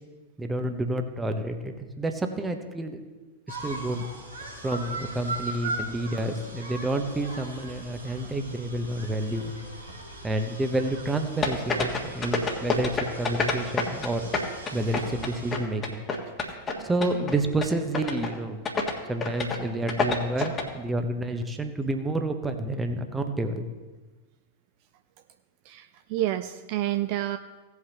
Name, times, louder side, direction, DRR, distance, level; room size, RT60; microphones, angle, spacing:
voice 1, 0.4-3.0 3.5-4.1 4.6-9.5 10.2-16.0 16.8-18.6 19.1-23.6, right 1 dB, 10° right, 7 dB, 1.1 m, -29 dB
sound 1, 3.5-15.6, right 2 dB, 90° right, 2.8 m, -39 dB
sound 2, 11.4-14.1 14.3-16.7 17.0-17.3 17.6-17.7 17.9-18.3 18.6-18.9 19.2-19.6 19.9-20.6, left 4 dB, 25° left, 1.5 m, -27 dB
voice 2, 25.7-27.4, right 14 dB, 45° right, 10 dB, 0.4 m, -29 dB
17.0 x 8.1 x 3.0 m, 1.3 s
figure-of-eight pair, 90°, 0 cm